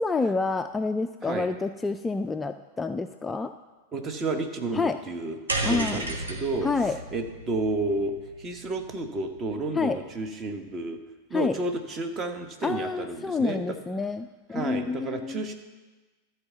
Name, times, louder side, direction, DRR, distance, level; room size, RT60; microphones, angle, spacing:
voice 1, 0.0-3.5 4.7-5.0 5.6-6.0 6.6-7.0 9.7-10.0 11.3-11.5 12.6-15.4, left 4 dB, 10° left, 8 dB, 0.3 m, -28 dB
voice 2, 3.9-11.0 11.3-13.7 14.5-15.5, right 2 dB, 25° right, 6 dB, 1.1 m, -31 dB
sound 1, 5.5-9.9, right 2 dB, 75° right, 1.1 m, -34 dB
13.0 x 4.5 x 7.2 m, 1.3 s
figure-of-eight pair, 90°, 0 cm